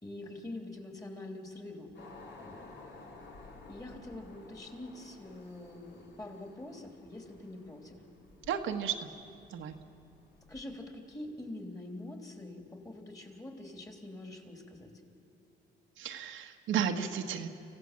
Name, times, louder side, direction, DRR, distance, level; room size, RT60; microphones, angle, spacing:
voice 1, 0.0-1.9 2.4-2.6 3.7-8.0 10.5-14.9, left 1 dB, 15° left, 3 dB, 3.2 m, -45 dB
sound 1, 1.9-10.6, left 3 dB, 60° left, 3.5 m, -54 dB
voice 2, 8.5-9.1 9.5-9.7 16.0-17.5, right 8 dB, 80° right, 4 dB, 1.3 m, -33 dB
26.0 x 16.0 x 7.5 m, 2.6 s
cardioid pair, 90°, 20 cm